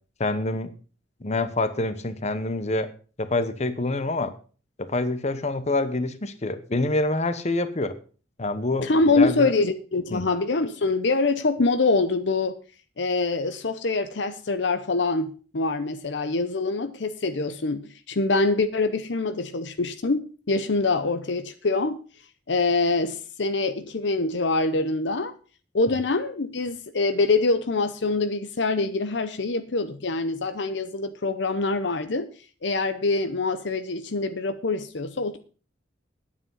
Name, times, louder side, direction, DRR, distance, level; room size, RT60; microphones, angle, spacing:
voice 1, 0.2-0.7 1.2-2.9 3.2-4.3 4.8-7.9 8.4-8.9 9.1-9.5 10.1-10.2 25.9-26.0, left 2 dB, 35° left, 1.0 m, -26 dB
voice 2, 8.8-12.6 13.0-22.0 22.5-25.3 25.7-32.3 32.6-35.4, left 3 dB, 65° left, 0.8 m, -25 dB
9.8 x 8.7 x 5.5 m
head